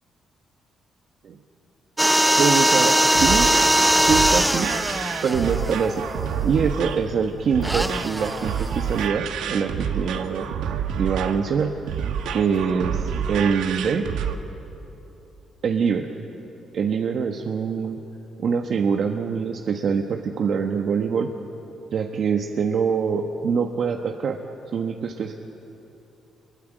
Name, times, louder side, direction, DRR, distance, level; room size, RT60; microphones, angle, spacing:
sound 1, 2.0-6.5 7.6-9.0, right 1 dB, 5° right, 0.6 m, -21 dB
voice 1, 2.4-3.5 4.0-4.7 5.2-6.0 6.4-10.5 11.0-11.8 12.3-14.0 15.6-16.1 16.7-18.0 18.4-21.3 21.9-24.4 24.7-25.4, right 6 dB, 60° right, 4 dB, 1.3 m, -24 dB
sound 2, 3.1-14.3, right 8 dB, 85° right, 1.5 m, -29 dB
27.0 x 22.5 x 9.0 m, 3.0 s
cardioid pair, 90°, 0 cm